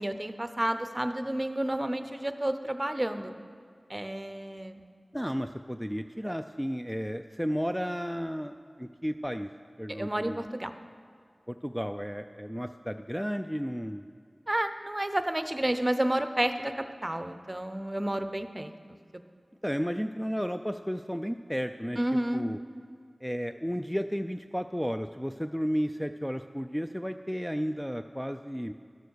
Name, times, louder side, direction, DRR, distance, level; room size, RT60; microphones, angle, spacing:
voice 1, 0.0-3.3 3.9-4.8 9.9-10.7 14.5-18.7 22.0-22.5, right 1 dB, 25° right, 9 dB, 0.7 m, -30 dB
voice 2, 5.1-9.5 9.8-10.4 11.5-14.1 19.6-22.0 22.3-22.6 23.2-28.7, equal, ahead, 7 dB, 0.3 m, -33 dB
12.5 x 6.9 x 6.4 m, 2.2 s
wide cardioid pair, 45°, 0 cm